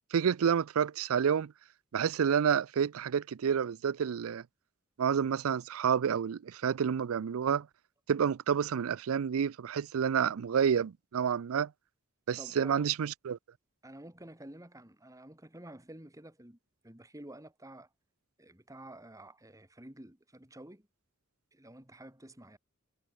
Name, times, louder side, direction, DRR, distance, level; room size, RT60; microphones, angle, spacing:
voice 1, 0.1-1.5 1.9-4.4 5.0-7.7 8.1-11.7 12.3-13.4, right 7 dB, 85° right, 0.4 m, -29 dB
voice 2, 12.4-12.8 13.8-16.6 16.8-17.9 18.4-20.9 21.5-22.6, right 1 dB, 15° right, 2.9 m, -50 dB
head